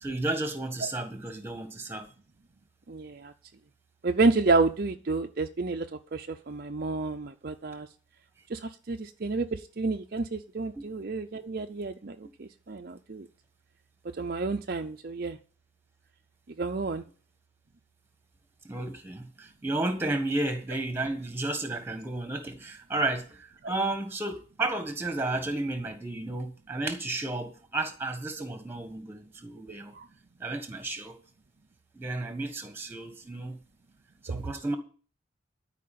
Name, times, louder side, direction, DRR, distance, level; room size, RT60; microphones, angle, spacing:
voice 1, 0.0-2.1 10.7-10.8 18.6-29.9 30.4-31.2 31.9-33.6 34.2-34.8, right 2 dB, 10° right, 7 dB, 1.4 m, -32 dB
voice 2, 2.9-3.3 4.0-5.9 6.1-7.9 8.5-13.3 14.2-15.4 16.6-17.0 23.6-23.7 29.9-30.0, right 3 dB, 45° right, 5 dB, 0.5 m, -30 dB
12.5 x 5.0 x 8.5 m, 0.40 s
head